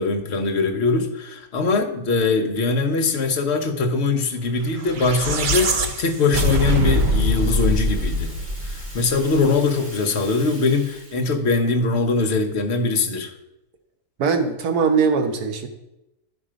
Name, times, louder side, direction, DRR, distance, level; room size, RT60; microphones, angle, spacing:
voice 1, 0.0-8.3 8.7-13.3, left 3 dB, 50° left, 5 dB, 1.1 m, -22 dB
Rattle (instrument), 4.5-11.4, equal, 35° right, 3.2 m, -44 dB
sound 1, 4.8-9.2, equal, 50° right, 0.6 m, -22 dB
voice 2, 14.2-15.7, right 5 dB, 80° right, 5 dB, 1.5 m, -20 dB
11.0 x 4.4 x 5.0 m, 0.92 s
omnidirectional pair, 1.6 m